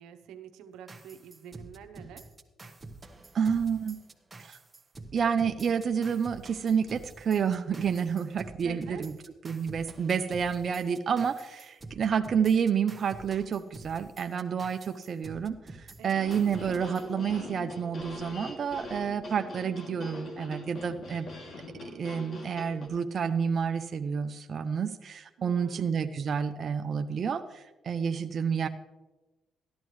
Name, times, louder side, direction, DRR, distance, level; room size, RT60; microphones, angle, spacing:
voice 1, 0.0-2.3 8.6-9.1 16.0-16.3 25.4-25.9, right 8 dB, 90° right, 8 dB, 0.8 m, -47 dB
sound 1, 0.9-17.8, right 2 dB, 20° right, 1.0 m, -48 dB
voice 2, 3.3-4.0 4.4-4.6 5.1-9.1 9.4-21.3 21.9-28.7, right 7 dB, 50° right, 7 dB, 0.5 m, -29 dB
sound 2, 16.1-22.9, left 2 dB, 60° left, 2.5 m, -42 dB
13.5 x 11.0 x 3.1 m, 1.2 s
cardioid pair, 90°, 0 cm